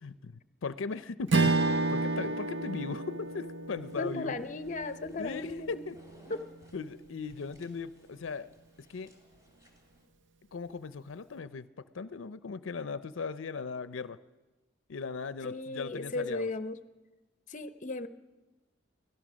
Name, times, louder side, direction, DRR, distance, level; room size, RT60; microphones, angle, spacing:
voice 1, 0.0-4.4 5.2-6.0 6.7-8.5 8.9-9.1 10.5-11.7 11.9-14.2 14.9-16.5, left 4 dB, 90° left, 14 dB, 0.6 m, -38 dB
Strum, 1.3-5.9, right 3 dB, 65° right, 0.6 m, -31 dB
sound 1, 3.7-10.1, equal, 20° right, 3.0 m, -60 dB
voice 2, 4.0-5.8 6.3-6.4 15.4-16.8 17.5-18.1, left 2 dB, 40° left, 12 dB, 0.8 m, -36 dB
24.5 x 17.0 x 6.3 m, 1.2 s
head